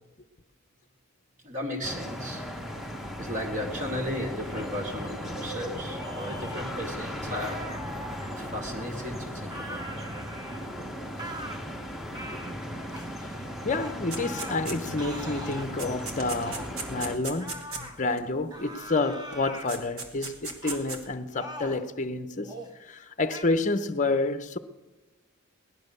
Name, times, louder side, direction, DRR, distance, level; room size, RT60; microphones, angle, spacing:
voice 1, 1.4-2.4 3.2-7.7 8.3-10.1, left 1 dB, 35° right, 2.5 m, -35 dB
sound 1, 1.8-17.2, equal, ahead, 1.1 m, -37 dB
sound 2, 5.8-6.7 7.4-8.5 9.5-10.7 11.2-11.6 12.1-12.5 12.9-13.1 13.7-14.7 15.0-15.7 16.5-16.7 17.4-18.0 18.5-19.7 20.6-20.9 21.3-21.9 22.4-22.7 23.3-23.4, equal, 20° right, 1.5 m, -41 dB
voice 2, 13.6-22.5 22.8-24.6, left 3 dB, 35° left, 0.8 m, -29 dB
sound 3, 14.1-15.1 15.5-18.2 19.3-19.4 19.7-21.0, right 4 dB, 70° right, 2.4 m, -37 dB
18.0 x 12.0 x 6.7 m
head